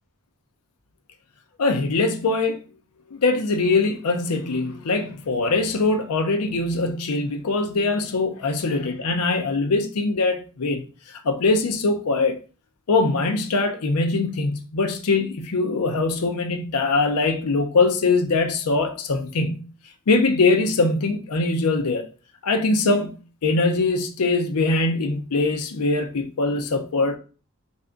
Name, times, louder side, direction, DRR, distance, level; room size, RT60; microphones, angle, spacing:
voice 1, 1.6-2.6 3.1-10.8 11.2-12.4 12.9-19.6 20.1-22.1 22.4-27.2, left 3 dB, 85° left, 0.6 m, -22 dB
3.4 x 2.6 x 3.7 m
head